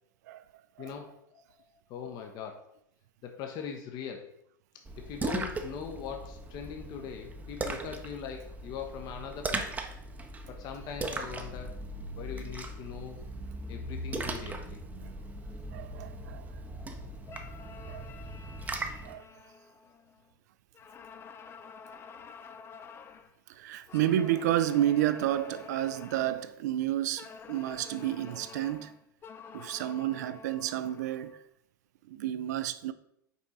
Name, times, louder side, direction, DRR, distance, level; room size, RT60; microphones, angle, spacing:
voice 1, 0.8-1.4 1.9-2.7 3.2-4.3 5.0-9.8 10.5-11.8 12.2-13.2 13.7-14.8 16.7-17.1, left 7 dB, 40° left, 0.8 m, -41 dB
Splash splatter, 4.8-19.1, right 2 dB, 15° right, 0.7 m, -39 dB
voice 2, 15.7-16.4 17.8-18.1 19.0-19.3 23.5-28.9 29.5-31.4 32.1-32.9, right 12 dB, 60° right, 0.4 m, -30 dB
sound 1, 17.3-20.3 20.7-23.3 23.9-26.5 27.2-31.4, left 5 dB, 20° left, 0.4 m, -49 dB
5.5 x 4.5 x 4.1 m
figure-of-eight pair, 90°, 10 cm